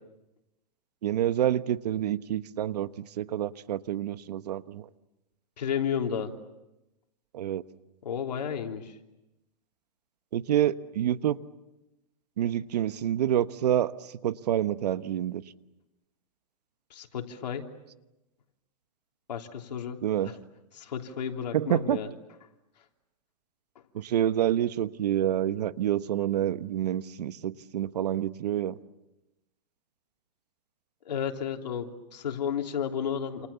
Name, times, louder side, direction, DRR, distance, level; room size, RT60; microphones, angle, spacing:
voice 1, 1.0-2.9 3.2-4.8 7.3-7.6 10.3-11.4 12.4-13.9 14.2-15.4 20.0-20.3 21.5-22.0 23.9-28.8, right 11 dB, 80° right, 13 dB, 1.2 m, -27 dB
voice 2, 5.6-6.3 8.0-9.0 16.9-17.7 19.3-20.4 20.7-22.1 31.1-33.5, left 8 dB, 90° left, 3 dB, 3.3 m, -32 dB
29.0 x 28.5 x 7.0 m, 0.95 s
hypercardioid pair, 145°, 21 cm